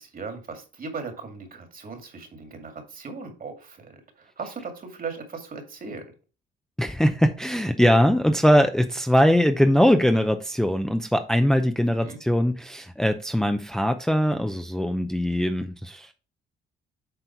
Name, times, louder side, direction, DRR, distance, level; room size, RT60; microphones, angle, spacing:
voice 1, 0.0-6.1 12.0-12.2, right 4 dB, 45° right, 5 dB, 2.2 m, -38 dB
voice 2, 6.8-16.1, equal, 5° left, 7 dB, 0.6 m, -21 dB
7.9 x 4.4 x 4.5 m, 0.34 s
cardioid pair, 90°, 20 cm